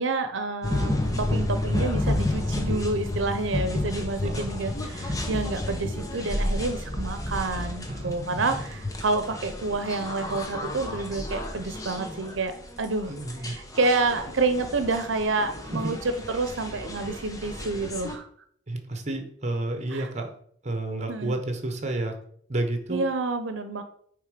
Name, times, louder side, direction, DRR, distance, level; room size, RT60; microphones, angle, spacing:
voice 1, 0.0-13.1 13.4-18.3 19.9-20.1 21.1-21.4 22.9-23.8, right 3 dB, 90° right, 9 dB, 0.7 m, -29 dB
sound 1, 0.6-18.2, left 1 dB, 20° left, 1.0 m, -31 dB
voice 2, 7.9-8.6 13.1-13.5 15.7-15.8 18.7-20.3 20.6-22.1 22.5-23.0, right 2 dB, 35° right, 5 dB, 1.1 m, -31 dB
9.0 x 3.6 x 5.0 m, 0.63 s
head